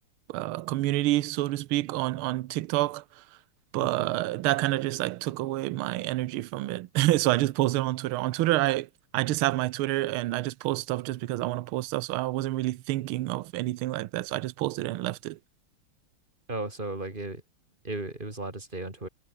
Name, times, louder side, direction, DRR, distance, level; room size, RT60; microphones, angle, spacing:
voice 1, 0.3-3.2 3.7-8.9 9.1-15.4, right 16 dB, 80° right, 1.5 m, -28 dB
voice 2, 16.5-17.4 17.8-19.1, right 2 dB, 20° right, 4.1 m, -35 dB
omnidirectional pair, 2.4 m